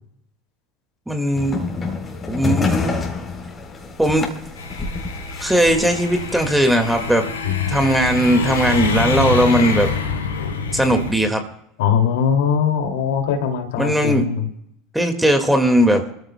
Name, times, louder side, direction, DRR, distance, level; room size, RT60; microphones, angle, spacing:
voice 1, 1.1-1.6 2.3-3.0 4.0-4.3 5.4-7.3 7.7-9.9 10.7-11.4 13.8-14.3 14.9-16.0, right 1 dB, 5° right, 5 dB, 2.0 m, -18 dB
sound 1, 1.3-7.1, left 4 dB, 30° left, 3.7 m, -28 dB
sound 2, 4.6-11.1, left 4 dB, 90° left, 2.8 m, -26 dB
voice 2, 7.4-7.8 11.8-14.5, left 7 dB, 70° left, 4 dB, 2.5 m, -21 dB
28.0 x 14.5 x 2.3 m, 0.75 s
hypercardioid pair, 80°, 0 cm